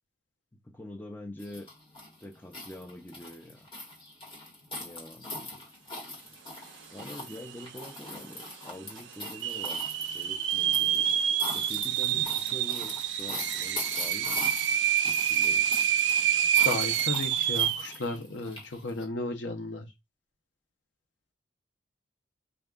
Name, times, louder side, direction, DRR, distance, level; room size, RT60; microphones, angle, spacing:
voice 1, 0.6-1.7 2.2-3.7 4.8-5.6 6.9-9.8 10.1-11.2 11.5-14.5 15.1-15.7, left 1 dB, 10° left, 0.5 m, -45 dB
sound 1, 1.4-19.0, left 2 dB, 25° left, 1.2 m, -41 dB
sound 2, 7.0-7.1 7.3-7.9 8.4-8.5 9.2-17.9, right 10 dB, 70° right, 0.3 m, -27 dB
voice 2, 16.6-19.9, left 2 dB, 75° left, 0.7 m, -34 dB
3.5 x 2.3 x 3.6 m
head